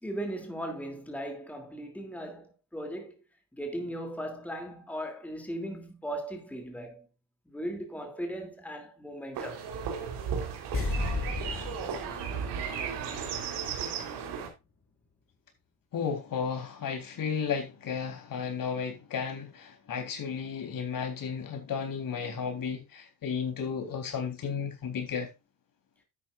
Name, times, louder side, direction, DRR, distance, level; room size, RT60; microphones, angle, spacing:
voice 1, 0.0-3.1 3.5-7.1 7.5-9.7, right 1 dB, 5° left, 2.8 m, -38 dB
sound 1, 9.3-14.5, right 7 dB, 80° right, 3.8 m, -35 dB
sound 2, 10.7-13.9 14.2-14.3, left 2 dB, 30° left, 4.7 m, -35 dB
voice 2, 15.9-25.3, left 6 dB, 55° left, 3.7 m, -33 dB
12.0 x 9.1 x 2.5 m
cardioid pair, 100°, 40 cm